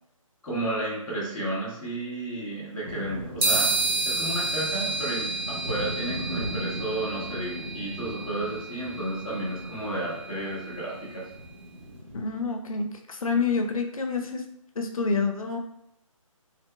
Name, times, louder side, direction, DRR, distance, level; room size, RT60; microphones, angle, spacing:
voice 1, 0.4-3.7 4.0-11.3, right 1 dB, ahead, -19 dB, 0.3 m, -32 dB
sound 1, 2.8-12.4, equal, 70° right, 1.1 m, -39 dB
sound 2, 3.4-11.1, right 3 dB, 40° right, 0.9 m, -31 dB
voice 2, 12.1-14.4 14.8-15.6, left 4 dB, 80° left, 4 dB, 0.5 m, -28 dB
2.7 x 2.1 x 3.2 m, 0.78 s
figure-of-eight pair, 155°, 18 cm